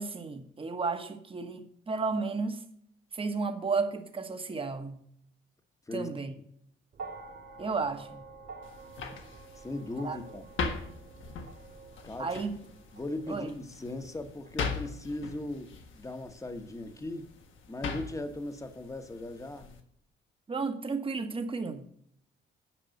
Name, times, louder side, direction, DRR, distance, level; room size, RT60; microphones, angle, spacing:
voice 1, 0.0-2.6 3.1-5.0 5.9-6.3 7.6-8.2 10.0-10.2 12.2-12.6 13.3-13.5 20.5-21.8, right 4 dB, 25° right, 1.2 m, -33 dB
sound 1, 6.9-15.3 16.3-16.4, right 4 dB, 60° right, 2.4 m, -49 dB
sound 2, 8.6-19.8, left 4 dB, 75° left, 1.5 m, -41 dB
voice 2, 9.6-10.5 12.0-12.4 12.9-17.2 17.7-19.7, left 2 dB, 15° left, 1.1 m, -38 dB
9.2 x 5.3 x 6.4 m
cardioid pair, 90°, 20 cm